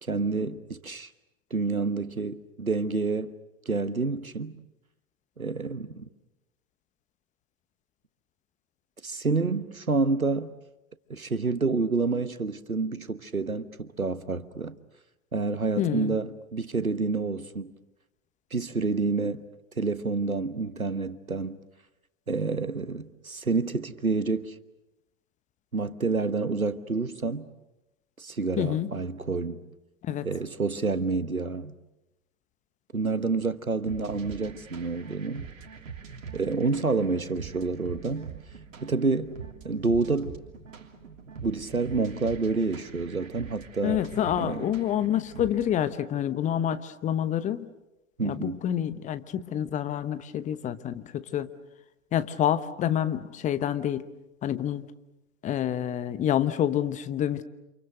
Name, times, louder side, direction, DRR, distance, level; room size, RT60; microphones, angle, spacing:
voice 1, 0.1-1.1 1.5-3.3 3.6-4.6 5.4-6.1 9.0-10.5 11.1-14.8 15.3-17.7 18.5-19.4 19.8-21.6 22.3-24.5 25.7-27.5 28.2-29.7 30.2-31.7 32.9-35.5 36.3-38.3 38.8-39.4 39.6-40.4 41.4-44.0 44.4-44.7 48.2-48.6, right 4 dB, 90° right, 1.3 m, -28 dB
voice 2, 15.8-16.1 28.6-28.9 30.0-30.3 43.8-47.7 48.2-51.5 52.1-54.0 54.4-54.8 55.4-57.4, left 10 dB, 20° left, 1.0 m, -28 dB
sound 1, 33.9-45.9, right 6 dB, 65° right, 3.2 m, -43 dB
29.0 x 27.5 x 6.7 m
figure-of-eight pair, 105°, 41 cm